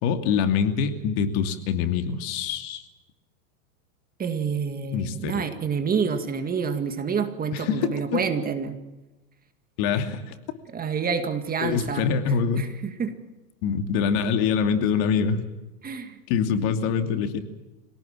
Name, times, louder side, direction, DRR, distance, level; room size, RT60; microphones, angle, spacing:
voice 1, 0.0-2.8 4.9-5.5 7.7-8.2 9.8-10.2 11.6-12.7 13.6-15.4 16.3-17.4, left 6 dB, 50° left, 7 dB, 2.8 m, -24 dB
voice 2, 4.2-8.8 10.7-12.1 12.6-13.1 15.8-16.2 16.6-16.7, right 6 dB, 20° right, 8 dB, 2.0 m, -28 dB
26.0 x 18.0 x 7.5 m, 1.1 s
supercardioid pair, 135°, 45 cm